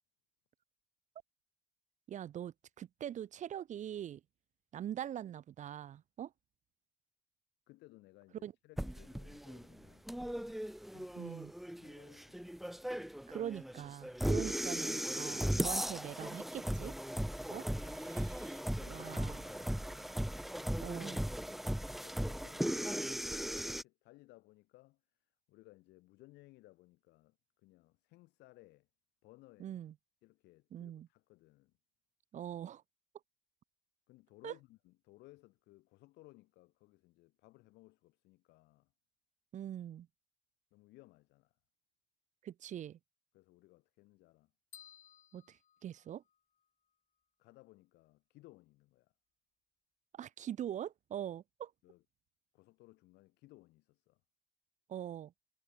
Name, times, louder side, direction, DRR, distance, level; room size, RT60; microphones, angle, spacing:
voice 1, 2.1-4.2 4.7-6.3 8.4-8.5 11.2-11.5 13.3-16.9 17.5-17.7 18.9-19.4 20.8-21.2 29.6-29.9 30.7-31.1 32.3-32.8 34.4-34.5 39.5-40.1 42.4-43.0 45.3-46.2 50.1-51.7 54.9-55.3, right 10 dB, 45° right, 0.6 m, -43 dB
voice 2, 7.7-10.5 10.9-11.4 11.8-12.6 22.0-25.0 25.5-27.4 27.6-28.9 29.2-29.8 30.2-31.7 34.1-38.9 40.7-41.6 43.3-44.5 47.4-49.1 51.8-52.0 52.5-54.2, left 19 dB, 90° left, 4.4 m, -61 dB
sound 1, 8.8-23.8, equal, ahead, 0.3 m, -37 dB
sound 2, 17.6-18.8 19.1-22.2, right 16 dB, 80° right, 4.2 m, -67 dB
sound 3, 44.7-46.6, left 9 dB, 50° left, 1.7 m, -59 dB
cardioid pair, 110°, 17 cm